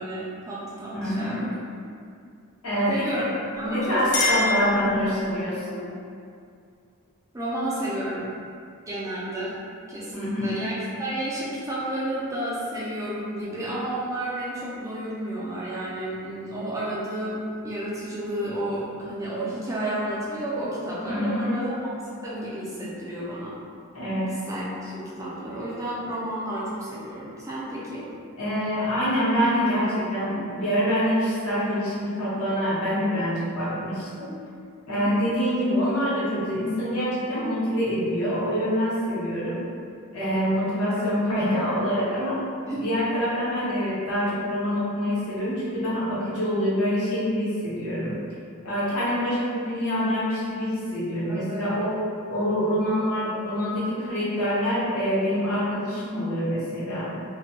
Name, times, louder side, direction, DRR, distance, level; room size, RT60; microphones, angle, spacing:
voice 1, 0.0-1.5 2.9-3.3 3.5-4.5 7.3-8.3 8.8-9.5 9.9-21.7 22.2-23.6 24.5-28.0 34.9-35.3 42.6-42.9 51.3-51.7, right 1 dB, 15° right, -8 dB, 0.4 m, -31 dB
voice 2, 0.9-1.5 2.6-3.1 3.6-5.8 10.1-10.6 21.1-21.6 23.9-24.4 28.4-34.3 34.9-39.6 40.1-42.4 42.7-48.1 48.6-52.0 52.3-57.1, equal, 85° left, -9 dB, 0.9 m, -25 dB
Chink clink, 3.6-5.4, left 2 dB, 55° left, 0.6 m, -27 dB
2.2 x 2.1 x 2.8 m, 2.3 s
head